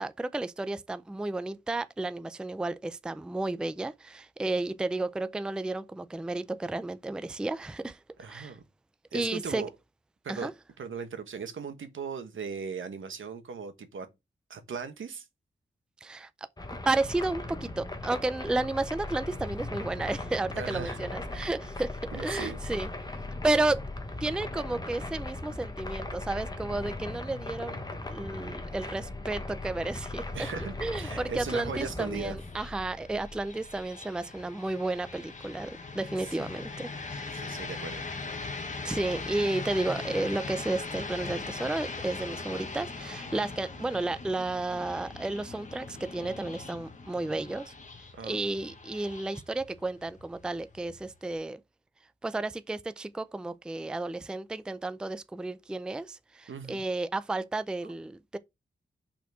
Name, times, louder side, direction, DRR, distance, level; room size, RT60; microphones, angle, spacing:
voice 1, 0.0-8.5 9.1-9.6 10.3-10.5 16.0-16.3 16.9-22.9 23.4-23.8 24.2-27.8 28.1-30.2 30.8-37.3 38.8-47.7 48.2-51.6 52.2-58.4, right 2 dB, 5° right, 0.4 m, -32 dB
voice 2, 8.2-8.6 9.1-9.7 10.2-10.5 10.8-14.1 14.5-15.3 20.5-21.0 22.1-22.6 30.3-32.4 36.2-36.5 37.3-38.0 48.1-48.4 56.5-56.9, right 5 dB, 80° right, 1.4 m, -38 dB
sound 1, 16.6-33.9, left 2 dB, 20° left, 1.2 m, -38 dB
sound 2, 32.4-51.3, left 3 dB, 40° left, 1.3 m, -41 dB
5.5 x 4.4 x 6.1 m
wide cardioid pair, 145°, 20 cm